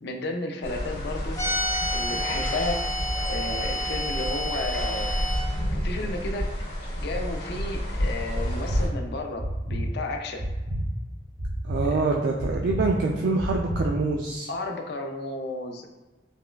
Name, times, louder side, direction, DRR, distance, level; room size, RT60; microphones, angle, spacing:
voice 1, 0.0-1.4 1.9-2.8 3.3-5.1 5.7-6.5 7.0-10.4 11.8-12.0 14.5-15.9, left 2 dB, 65° left, 4 dB, 0.4 m, -33 dB
sound 1, 0.6-8.9, equal, 85° left, 1.4 m, -30 dB
sound 2, 1.3-5.4, equal, 20° left, 0.6 m, -30 dB
sound 3, 8.4-8.8 9.4-9.8 10.4-10.8 11.4-11.8 12.4-12.8 13.4-13.8, equal, 75° right, 1.0 m, -30 dB
voice 2, 11.6-14.5, right 3 dB, 60° right, 0 dB, 0.3 m, -25 dB
4.2 x 2.2 x 2.2 m, 1.2 s
head